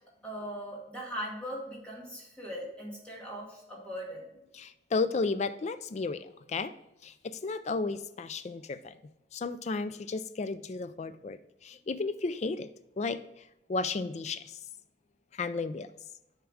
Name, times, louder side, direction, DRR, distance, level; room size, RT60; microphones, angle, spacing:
voice 1, 0.2-4.3, equal, 5° left, -5 dB, 2.2 m, -39 dB
voice 2, 4.5-6.7 7.0-9.0 9.3-12.7 13.0-14.6 15.3-15.9, left 3 dB, 35° left, 13 dB, 0.3 m, -33 dB
10.0 x 3.7 x 4.9 m, 0.90 s
head